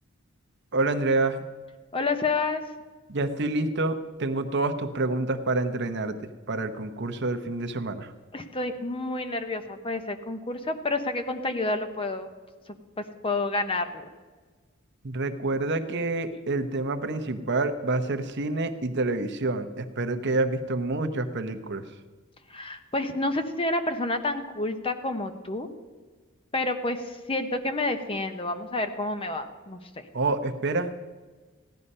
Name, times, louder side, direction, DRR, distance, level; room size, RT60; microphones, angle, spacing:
voice 1, 0.7-1.4 3.1-8.1 15.0-21.8 30.1-30.9, right 2 dB, 55° right, 9 dB, 0.9 m, -28 dB
voice 2, 1.9-2.6 8.3-12.3 13.2-14.1 22.5-25.7 26.5-30.0, left 2 dB, 25° left, 8 dB, 0.9 m, -29 dB
15.5 x 11.0 x 5.5 m, 1.4 s
head